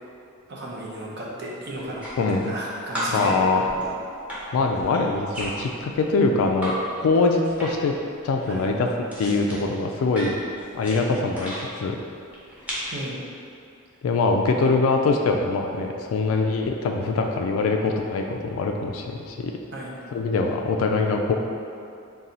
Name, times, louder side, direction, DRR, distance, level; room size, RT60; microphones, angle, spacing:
voice 1, 0.5-3.4 8.5-8.7 12.9-13.2 19.7-19.9, right 1 dB, 55° right, -4 dB, 0.7 m, -34 dB
sound 1, 1.7-2.6 2.9-6.8 7.1-8.0 8.2-11.6 12.3-13.0, equal, 5° right, 0.8 m, -35 dB
voice 2, 2.2-2.5 3.1-3.6 4.5-7.9 8.2-8.9 9.2-10.3 10.7-12.0 14.0-19.5 20.1-21.3, left 3 dB, 75° left, 3 dB, 0.3 m, -23 dB
4.2 x 2.3 x 3.8 m, 2.5 s
head